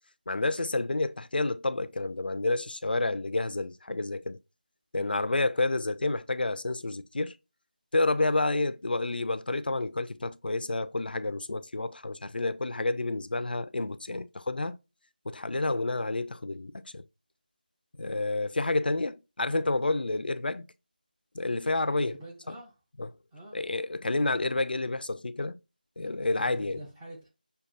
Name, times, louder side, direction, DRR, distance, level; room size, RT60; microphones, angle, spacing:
voice 1, 0.3-4.4 4.9-7.4 7.9-14.8 15.3-17.0 18.0-20.7 21.3-22.1 22.5-22.6 23.0-23.1 23.5-25.6 26.0-26.8, left 2 dB, 75° left, 0.4 m, -29 dB
voice 2, 21.9-22.7 23.3-23.6 26.2-27.3, right 1 dB, 5° right, 0.4 m, -46 dB
6.5 x 2.3 x 2.5 m
figure-of-eight pair, 175°, 5 cm